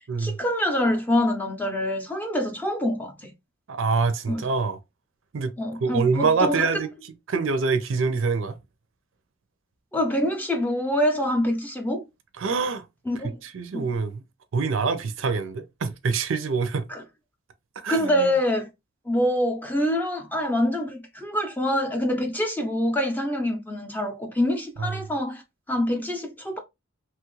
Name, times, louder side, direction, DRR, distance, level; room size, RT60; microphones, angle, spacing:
voice 1, 0.2-3.3 4.3-4.5 5.6-6.9 9.9-12.0 13.1-13.4 13.7-13.9 16.9-17.0 17.9-18.7 19.1-25.4 25.7-26.6, left 1 dB, 10° left, 0.5 m, -25 dB
voice 2, 3.7-4.8 5.3-5.5 5.8-6.9 7.3-8.6 12.4-12.8 13.4-14.2 14.5-16.8 17.8-18.3 24.8-24.9, right 4 dB, 65° right, 0.5 m, -25 dB
3.1 x 2.3 x 3.0 m
head